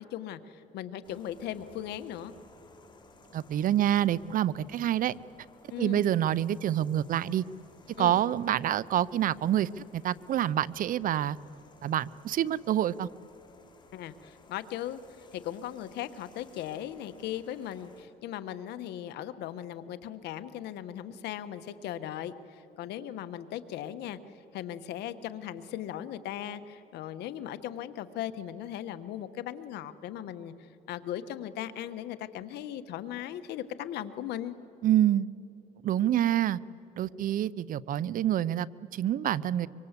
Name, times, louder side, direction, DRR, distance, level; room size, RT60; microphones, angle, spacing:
voice 1, 0.0-2.3 5.7-6.0 8.0-8.2 13.9-15.0 15.3-24.2 24.5-34.5, left 11 dB, 80° left, 11 dB, 1.3 m, -38 dB
sound 1, 1.0-18.0, left 3 dB, 25° left, 3.0 m, -57 dB
voice 2, 3.3-5.1 5.8-7.4 8.0-11.4 11.8-13.1 34.8-35.3 35.8-36.6 37.0-38.7 38.9-39.7, right 11 dB, 55° right, 20 dB, 0.6 m, -27 dB
25.0 x 24.5 x 8.2 m, 2.9 s
cardioid pair, 110°, 17 cm